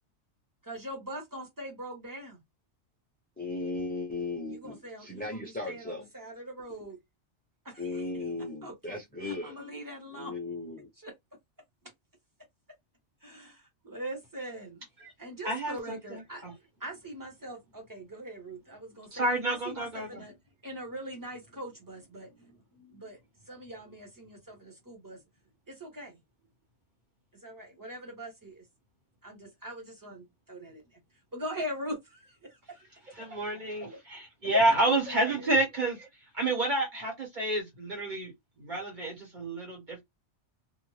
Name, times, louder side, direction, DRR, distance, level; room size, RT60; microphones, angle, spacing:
voice 1, 0.7-2.4 4.5-7.0 7.6-8.3 8.6-10.4 11.0-11.1 13.2-14.8 15.2-20.4 20.6-23.2 23.4-25.2 25.7-26.2 27.4-28.6 29.2-30.8 31.3-32.6 34.9-35.5, equal, 15° right, 1.1 m, -42 dB
voice 2, 3.4-6.0 7.8-9.5 10.1-10.9, left 3 dB, 10° left, 0.5 m, -36 dB
voice 3, 15.4-16.5 19.1-20.2 33.1-36.1 36.3-38.3 38.6-40.0, right 2 dB, 40° right, 1.4 m, -29 dB
2.5 x 2.5 x 3.1 m
omnidirectional pair, 1.2 m